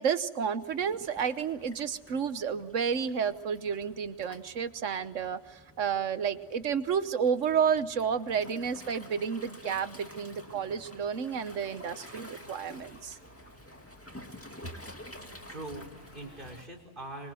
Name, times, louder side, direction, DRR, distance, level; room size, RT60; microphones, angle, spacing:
voice 1, 0.0-13.2, right 7 dB, 85° right, 13 dB, 1.4 m, -31 dB
Waves surf, 0.6-16.7, left 1 dB, 10° left, 2.1 m, -50 dB
sound 1, 8.3-16.5, left 1 dB, 55° left, 6.8 m, -57 dB
voice 2, 15.5-17.3, right 2 dB, 45° right, 0 dB, 5.5 m, -43 dB
25.0 x 25.0 x 7.8 m, 1.1 s
omnidirectional pair, 1.3 m